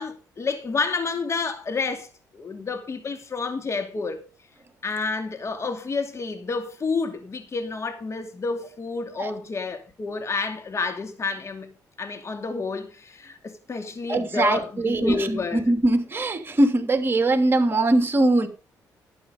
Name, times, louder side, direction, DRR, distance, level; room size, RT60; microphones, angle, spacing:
voice 1, 0.0-2.1 2.3-4.3 4.8-11.7 12.0-15.6, left 4 dB, 40° left, 2.7 m, -29 dB
voice 2, 14.1-18.5, right 2 dB, 30° right, 3.0 m, -21 dB
12.0 x 8.8 x 5.4 m
supercardioid pair, 65°, 7 cm